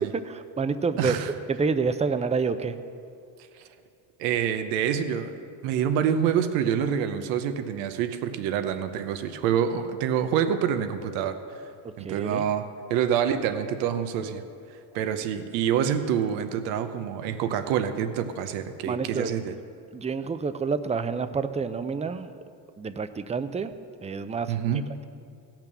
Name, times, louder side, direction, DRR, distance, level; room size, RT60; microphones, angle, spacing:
voice 1, 0.1-1.2 1.5-2.8 11.8-12.4 18.9-19.4 19.9-22.3 22.8-23.7 24.0-25.0, right 5 dB, 15° right, 11 dB, 0.5 m, -28 dB
voice 2, 1.0-1.3 3.5-3.7 4.2-5.4 5.6-11.4 12.0-14.4 14.7-19.5 24.5-24.9, right 8 dB, 90° right, 9 dB, 0.9 m, -27 dB
16.5 x 6.0 x 6.9 m, 2.4 s
supercardioid pair, 85°, 49 cm